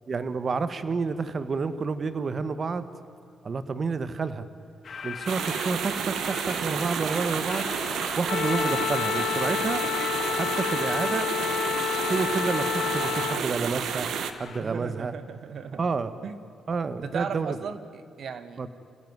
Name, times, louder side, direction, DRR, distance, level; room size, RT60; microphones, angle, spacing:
voice 1, 0.1-2.9 3.4-4.5 5.0-7.7 8.2-9.8 10.3-11.3 12.1-14.1 14.4-15.1 15.7-16.1 16.7-17.6 18.6-18.7, right 4 dB, 40° right, 12 dB, 1.3 m, -29 dB
sound 1, 4.8-14.6, left 6 dB, 50° left, 1.8 m, -41 dB
sound 2, 5.3-14.3, right 8 dB, 80° right, 1.6 m, -31 dB
Wind instrument woodwind instrument, 8.3-13.4, left 10 dB, 65° left, 1.3 m, -29 dB
voice 2, 14.6-15.8 16.2-16.4 17.0-18.6, right 6 dB, 60° right, 12 dB, 1.2 m, -36 dB
29.0 x 16.0 x 9.5 m, 2.6 s
cardioid pair, 115°, 0 cm